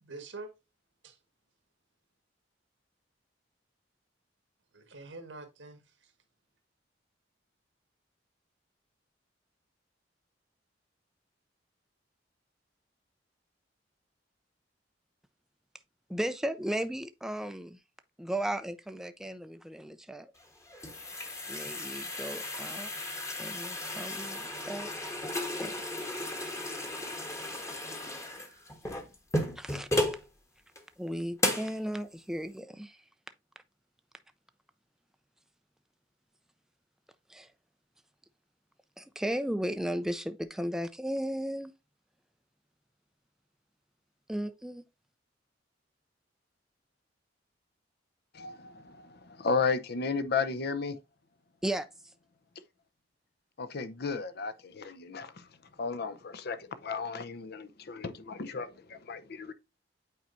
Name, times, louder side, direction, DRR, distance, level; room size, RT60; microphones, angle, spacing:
voice 1, 0.0-0.5 1.0-1.2 4.7-6.1, right 3 dB, 90° right, 1.6 m, -46 dB
voice 2, 16.1-17.8 18.2-20.3 21.5-22.9 23.4-24.9 25.6-25.7 29.6-30.1 31.0-33.0 37.3-37.5 39.0-41.7 44.3-44.8 51.6-51.9, right 1 dB, 5° right, 0.4 m, -35 dB
sound 1, 20.4-30.2 30.7-30.8 31.4-31.8, left 1 dB, 15° left, 1.1 m, -34 dB
voice 3, 48.3-51.0 53.6-55.5 55.8-59.5, left 4 dB, 60° left, 0.7 m, -34 dB
8.7 x 4.5 x 2.6 m
head